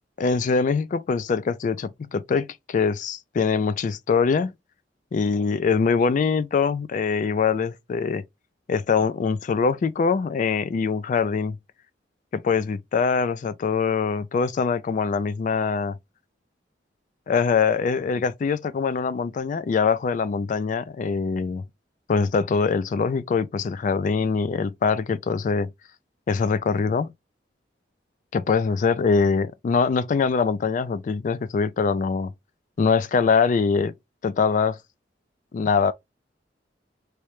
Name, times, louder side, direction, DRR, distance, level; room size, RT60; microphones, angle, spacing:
voice 1, 0.2-4.5 5.1-8.2 8.7-11.6 12.3-16.0 17.3-21.6 22.1-25.7 26.3-27.1 28.3-32.3 32.8-33.9 34.2-34.8 35.5-35.9, left 5 dB, 45° left, 0.3 m, -23 dB
3.2 x 2.8 x 3.1 m
head